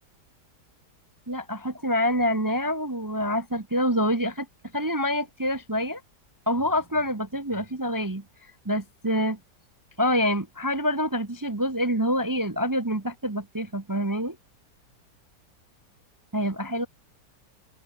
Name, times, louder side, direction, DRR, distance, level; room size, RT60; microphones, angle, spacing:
voice 1, 1.3-4.5 4.7-6.0 6.5-8.2 8.6-9.4 10.0-14.4 16.3-16.9, equal, 15° right, 0.7 m, -26 dB
open air
omnidirectional pair, 1.8 m